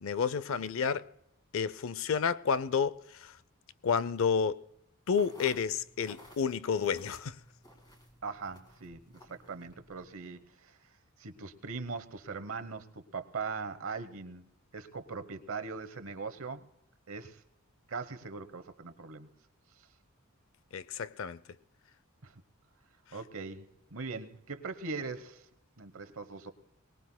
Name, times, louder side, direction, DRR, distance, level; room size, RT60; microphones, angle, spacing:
voice 1, 0.0-1.1 1.5-3.3 3.8-4.6 5.1-7.4 20.7-21.4, left 6 dB, 65° left, 0.5 m, -30 dB
sound 1, 5.1-10.1, equal, 20° left, 2.1 m, -56 dB
voice 2, 8.2-9.0 9.3-10.8 11.2-16.7 17.1-17.4 17.9-19.3 22.2-22.3 23.1-25.5 25.8-26.5, right 4 dB, 70° right, 1.0 m, -40 dB
23.0 x 19.5 x 2.2 m
head